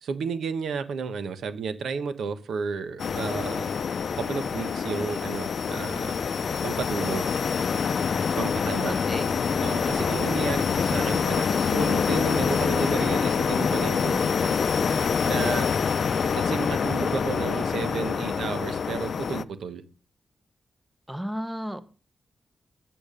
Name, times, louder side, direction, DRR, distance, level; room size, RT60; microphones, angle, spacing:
voice 1, 0.0-3.8 4.2-6.2 6.6-7.3 8.4-9.0 9.6-14.5 15.2-15.7 16.3-19.8, right 5 dB, 85° right, 10 dB, 1.1 m, -32 dB
sound 1, 3.0-19.4, left 6 dB, 60° left, 0.6 m, -26 dB
voice 2, 8.8-9.3 9.8-10.1 21.1-21.8, equal, 10° right, 12 dB, 0.9 m, -34 dB
9.0 x 8.9 x 5.1 m, 0.37 s
cardioid pair, 100°, 0 cm